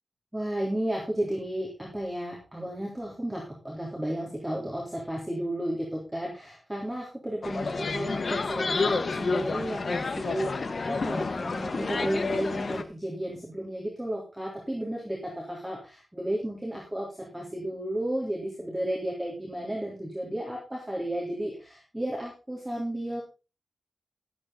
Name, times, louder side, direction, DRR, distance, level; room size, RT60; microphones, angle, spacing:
voice 1, 0.3-23.2, right 1 dB, 10° right, -3 dB, 3.5 m, -33 dB
sound 1, 7.4-12.8, left 4 dB, 55° left, 1.2 m, -29 dB
13.0 x 8.4 x 4.0 m, 0.30 s
wide cardioid pair, 95°, 0 cm